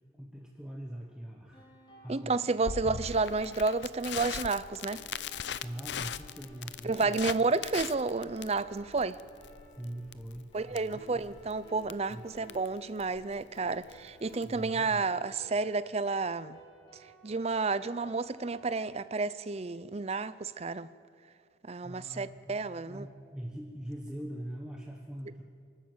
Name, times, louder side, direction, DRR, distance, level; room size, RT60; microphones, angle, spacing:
voice 1, 0.1-1.7 2.0-2.4 2.8-3.0 5.6-7.2 9.8-11.2 12.1-12.2 14.4-15.0 21.8-25.4, right 1 dB, 5° right, 1.3 m, -42 dB
sound 1, 1.5-18.8, right 1 dB, 30° left, 4.6 m, -57 dB
voice 2, 2.1-5.0 6.8-9.2 10.5-16.6 17.2-20.9 21.7-23.1, right 3 dB, 35° right, 0.5 m, -31 dB
Crackle, 2.7-14.6, left 8 dB, 70° left, 0.5 m, -41 dB
26.5 x 12.5 x 8.0 m
head